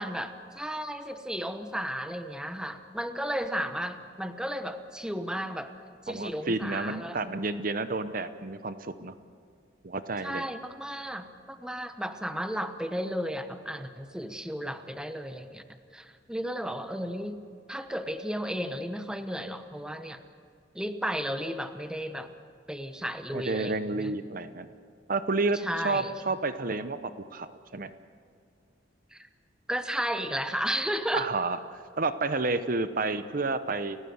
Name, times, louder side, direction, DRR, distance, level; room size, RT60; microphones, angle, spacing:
voice 1, 0.0-5.7 6.0-7.2 10.2-15.6 15.9-17.4 17.7-20.2 20.7-22.3 22.7-24.1 25.6-26.1 29.1-29.3 29.7-31.3, equal, 5° right, 8 dB, 1.0 m, -34 dB
voice 2, 6.1-9.2 9.8-10.4 23.3-24.7 25.1-27.0 27.3-27.9 31.1-34.0, right 3 dB, 50° right, 11 dB, 0.8 m, -30 dB
29.5 x 16.0 x 8.0 m, 2.3 s
head